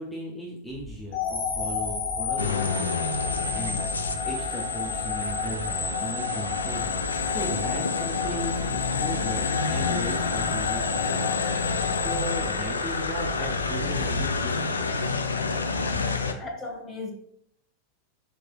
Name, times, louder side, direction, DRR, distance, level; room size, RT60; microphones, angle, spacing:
voice 1, 0.0-3.8 4.2-15.1, equal, 5° left, -3 dB, 0.6 m, -37 dB
sound 1, 0.7-14.9, equal, 85° right, 0.6 m, -40 dB
sound 2, 1.1-13.3, left 6 dB, 45° left, 1.2 m, -31 dB
sound 3, 2.4-16.3, left 4 dB, 75° left, 0.3 m, -29 dB
voice 2, 16.3-17.1, left 3 dB, 25° left, 0 dB, 1.0 m, -36 dB
4.5 x 3.1 x 2.3 m, 0.69 s
figure-of-eight pair, 90°, 0 cm